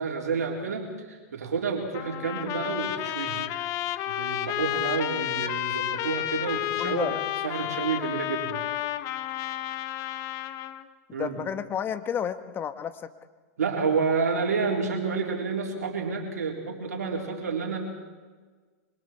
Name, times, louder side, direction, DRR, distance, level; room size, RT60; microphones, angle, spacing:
voice 1, 0.0-3.4 4.1-7.2 7.4-8.6 11.1-11.4 13.6-17.8, right 5 dB, 85° right, 0 dB, 3.9 m, -29 dB
Trumpet, 1.9-10.9, left 13 dB, 40° left, 1.3 m, -31 dB
voice 2, 6.8-7.2 11.1-13.1, left 8 dB, 25° left, 10 dB, 1.4 m, -31 dB
27.0 x 24.5 x 4.6 m, 1.4 s
hypercardioid pair, 115°, 8 cm